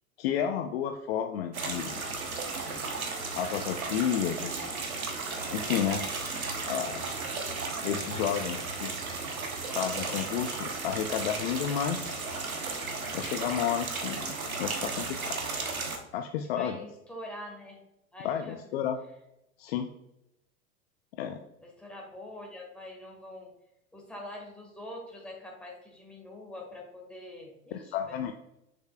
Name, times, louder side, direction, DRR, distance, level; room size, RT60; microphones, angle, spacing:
voice 1, 0.2-2.0 3.4-4.7 5.5-6.1 6.7-7.1 7.8-8.9 9.7-12.2 13.1-15.4 16.1-16.8 18.2-19.0 19.6-19.9 21.2-21.4 27.7-28.3, left 9 dB, 45° left, 6 dB, 0.5 m, -31 dB
sound 1, 1.5-16.0, right 4 dB, 80° right, 1.1 m, -34 dB
voice 2, 16.5-17.8 18.1-18.6 21.6-23.5 23.9-28.3, left 1 dB, 5° left, -2 dB, 1.8 m, -44 dB
6.7 x 6.4 x 2.3 m, 0.87 s
figure-of-eight pair, 90°, 42 cm